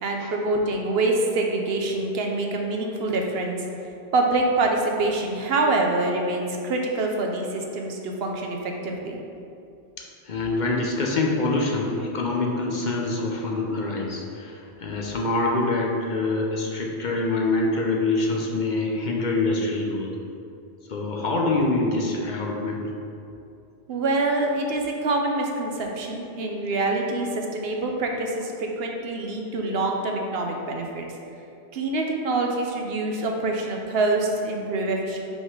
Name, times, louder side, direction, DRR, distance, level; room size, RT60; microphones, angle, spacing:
voice 1, 0.0-3.6 4.1-9.2 23.9-31.1 31.7-35.2, right 2 dB, 65° right, 1 dB, 0.9 m, -25 dB
voice 2, 10.0-20.1 20.9-22.8, left 2 dB, 50° left, -1 dB, 0.7 m, -25 dB
5.2 x 3.9 x 4.9 m, 2.6 s
omnidirectional pair, 1.1 m